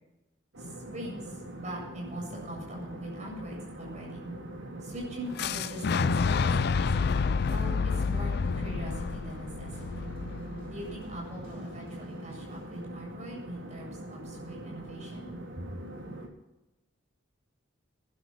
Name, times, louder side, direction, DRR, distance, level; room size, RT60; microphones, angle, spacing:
sound 1, 0.5-16.3, right 1 dB, 85° right, 3.4 m, -42 dB
voice 1, 0.6-4.2 4.8-7.1 7.5-10.1 10.7-15.3 15.6-15.8, right 1 dB, 35° right, -1 dB, 7.6 m, -42 dB
Boom, 5.4-11.3, left 5 dB, 55° left, 0.4 m, -29 dB
sound 2, 6.9-12.8, left 1 dB, 30° left, 6.8 m, -61 dB
20.5 x 12.0 x 4.5 m, 0.95 s
head